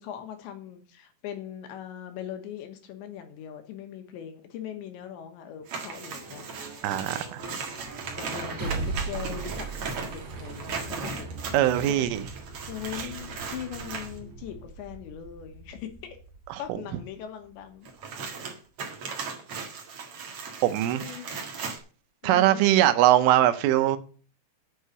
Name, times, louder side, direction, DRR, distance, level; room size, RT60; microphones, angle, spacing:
voice 1, 0.0-6.6 8.1-11.3 11.8-12.1 12.7-16.2 16.6-17.9 20.9-21.3 22.2-22.6, left 10 dB, 75° left, 3.3 m, -40 dB
sound 1, 5.6-17.7, right 4 dB, 40° right, 3.4 m, -39 dB
sound 2, 5.7-14.2 17.8-21.8, right 5 dB, 70° right, 1.4 m, -37 dB
voice 2, 6.8-7.4 11.5-12.2 16.5-16.6 20.6-21.0 22.2-24.0, right 13 dB, 85° right, 3.4 m, -21 dB
8.6 x 6.5 x 8.2 m
omnidirectional pair, 5.7 m